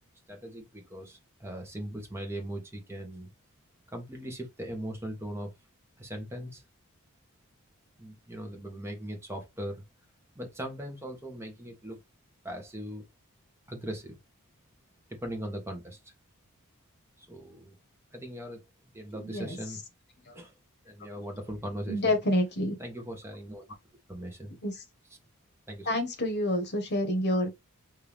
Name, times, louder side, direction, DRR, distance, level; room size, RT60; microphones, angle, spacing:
voice 1, 0.3-3.3 3.9-5.5 6.0-6.6 8.0-9.8 10.3-12.0 12.4-13.0 13.7-14.2 15.1-16.1 17.2-17.8 18.1-18.6 18.9-19.8 20.3-20.5 20.8-22.0 22.8-23.6 24.1-24.6 25.7-25.9, equal, 10° right, 1.4 m, -39 dB
voice 2, 19.2-19.6 20.3-20.4 21.9-22.8 24.6-24.8 25.8-27.5, left 1 dB, 50° left, 1.4 m, -28 dB
4.5 x 2.9 x 3.4 m
head